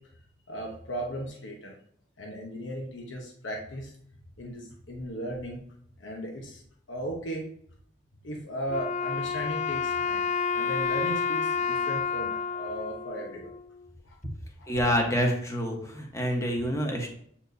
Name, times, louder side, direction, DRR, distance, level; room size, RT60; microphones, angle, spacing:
voice 1, 0.5-1.8 2.2-3.9 4.4-5.6 6.0-6.6 6.9-7.4 8.2-10.2 10.5-13.5 14.0-14.2 14.6-14.7, equal, 90° left, 0 dB, 1.0 m, -36 dB
Wind instrument woodwind instrument, 8.7-13.9, left 6 dB, 40° left, 0.3 m, -30 dB
voice 2, 14.7-17.1, equal, 15° left, 1 dB, 1.2 m, -27 dB
7.9 x 4.4 x 2.7 m, 0.64 s
head